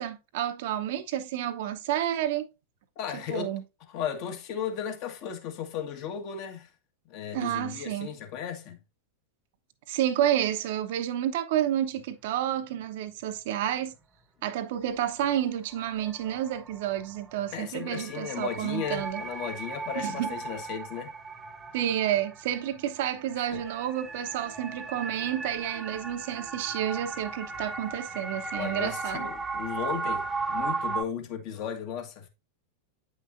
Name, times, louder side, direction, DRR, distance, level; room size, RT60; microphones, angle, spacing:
voice 1, 0.0-2.5 3.1-3.6 7.3-8.1 9.9-13.9 14.4-19.2 19.9-20.3 21.7-29.3, right 11 dB, 50° right, 0.8 m, -30 dB
voice 2, 2.9-3.5 3.9-6.7 7.1-8.8 17.5-21.1 23.4-23.6 28.5-32.3, left 8 dB, 45° left, 1.5 m, -35 dB
sound 1, 12.0-12.1 15.2-15.3 15.7-31.0, right 4 dB, 15° right, 1.0 m, -36 dB
9.0 x 5.9 x 2.6 m
figure-of-eight pair, 90°, 0 cm